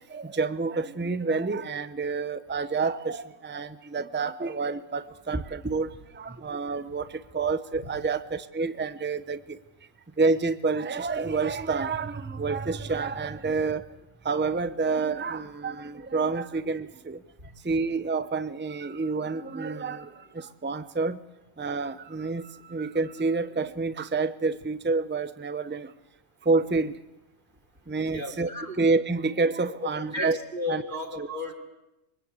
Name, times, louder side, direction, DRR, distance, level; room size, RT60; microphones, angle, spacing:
voice 1, 0.1-7.1 7.3-9.4 10.2-13.8 14.2-17.2 17.6-20.1 20.3-21.2 21.6-25.9 26.5-26.9 27.9-28.5 28.8-30.4 30.7-30.8 31.2-31.3, right 4 dB, 10° right, 12 dB, 0.7 m, -28 dB
voice 2, 28.1-28.8 30.0-31.5, left 2 dB, 35° right, 2 dB, 4.4 m, -34 dB
24.5 x 24.0 x 8.3 m, 0.92 s
omnidirectional pair, 1.4 m